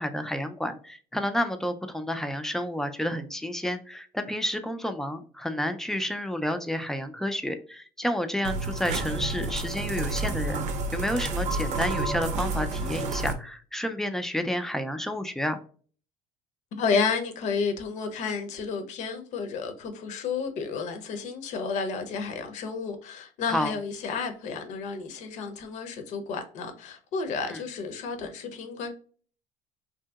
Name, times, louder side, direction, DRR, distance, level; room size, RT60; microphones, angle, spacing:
voice 1, 0.0-10.6 10.9-15.6 23.5-23.7 27.5-27.6, equal, 5° left, 0.3 m, -30 dB
sound 1, 8.4-13.3, right 2 dB, 55° right, 0.6 m, -30 dB
voice 2, 16.7-28.9, left 5 dB, 55° left, 0.7 m, -31 dB
2.7 x 2.7 x 2.3 m
cardioid pair, 130°, 14 cm